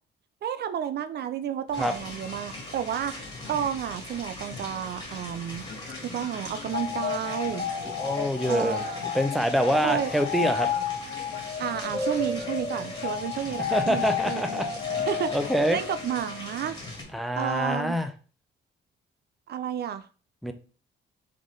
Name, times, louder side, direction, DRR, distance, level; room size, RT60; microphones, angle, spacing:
voice 1, 0.4-5.7 6.0-7.7 8.5-9.0 9.8-10.1 11.6-14.4 15.1-15.3 15.7-16.8 17.4-18.0 19.5-20.1, right 9 dB, 55° right, 11 dB, 0.4 m, -31 dB
Train, 1.7-17.1, left 4 dB, 70° left, 1.2 m, -47 dB
sound 1, 1.7-17.0, left 1 dB, 20° left, 1.8 m, -41 dB
sound 2, 6.7-16.5, left 7 dB, 45° left, 0.9 m, -32 dB
voice 2, 8.0-8.8 9.1-10.7 13.7-14.7 15.0-15.1 15.3-15.8 17.1-18.1 20.4-20.5, equal, ahead, 8 dB, 0.6 m, -25 dB
3.8 x 3.7 x 3.2 m, 0.37 s
cardioid pair, 90°, 20 cm